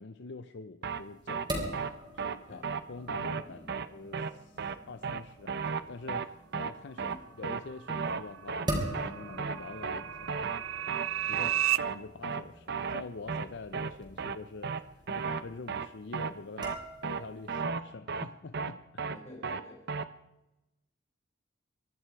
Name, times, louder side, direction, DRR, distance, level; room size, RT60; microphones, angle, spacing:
voice 1, 0.0-1.8 2.1-3.6 3.9-10.4 11.2-16.7 17.0-19.1, left 3 dB, 60° left, 11 dB, 0.6 m, -45 dB
sound 1, 0.8-17.6, right 1 dB, 25° right, 3.9 m, -43 dB
sound 2, 0.8-1.0 1.3-1.5 1.7-1.9 2.2-2.4 2.6-2.8 3.1-3.4 3.7-3.9 4.1-4.3 4.6-4.8 5.0-5.2 5.5-5.8 6.1-6.3 6.5-6.7 7.0-7.2 7.4-7.6 7.9-8.2 8.5-8.7 8.9-9.1 9.4-9.6 9.8-10.0 10.3-10.6 10.9-11.1 11.3-11.5 11.8-12.0 12.2-12.4 12.7-13.0 13.3-13.5 13.7-13.9 14.2-14.4 14.6-14.8 15.1-15.4 15.7-15.9 16.1-16.3 16.6-16.8 17.0-17.2 17.5-17.8 18.1-18.3 18.5-18.7 19.0-19.2 19.4-19.6 19.9-20.0, right 5 dB, 55° right, 0.8 m, -33 dB
sound 3, 7.6-11.8, right 12 dB, 85° right, 0.5 m, -34 dB
voice 2, 19.1-19.8, left 1 dB, 35° left, 1 dB, 4.4 m, -50 dB
24.0 x 11.5 x 4.7 m, 0.94 s
head